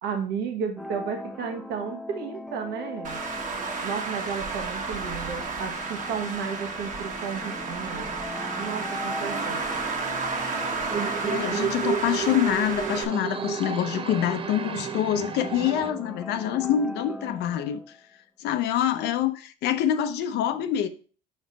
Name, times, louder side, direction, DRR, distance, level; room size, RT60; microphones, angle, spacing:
voice 1, 0.0-3.2 3.8-8.1 8.6-9.6, right 6 dB, 80° right, 1.3 m, -33 dB
sound 1, 0.8-18.0, left 1 dB, ahead, 0.8 m, -40 dB
Traffic noise roadway noise, 3.0-13.0, right 4 dB, 50° right, 1.4 m, -32 dB
sound 2, 10.9-15.9, right 7 dB, 30° right, 0.6 m, -32 dB
voice 2, 11.3-17.8 18.4-20.9, left 10 dB, 80° left, 0.7 m, -26 dB
5.7 x 5.3 x 4.1 m
cardioid pair, 110°, 17 cm